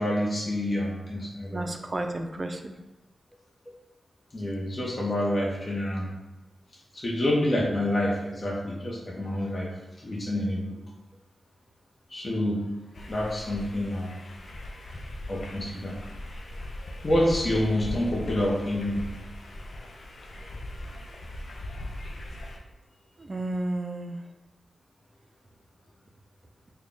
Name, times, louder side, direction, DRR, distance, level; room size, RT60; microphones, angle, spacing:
voice 1, 0.0-1.6 4.3-6.1 6.9-9.7 10.0-10.8 12.1-12.6 13.1-14.1 15.3-16.0 17.0-19.0, left 1 dB, 35° left, -3 dB, 0.8 m, -27 dB
voice 2, 1.5-2.7 23.2-24.2, right 1 dB, 30° right, 5 dB, 0.4 m, -32 dB
sound 1, 12.9-22.6, left 1 dB, 60° left, 0.5 m, -39 dB
3.6 x 2.2 x 3.7 m, 1.1 s
cardioid pair, 80°, 0 cm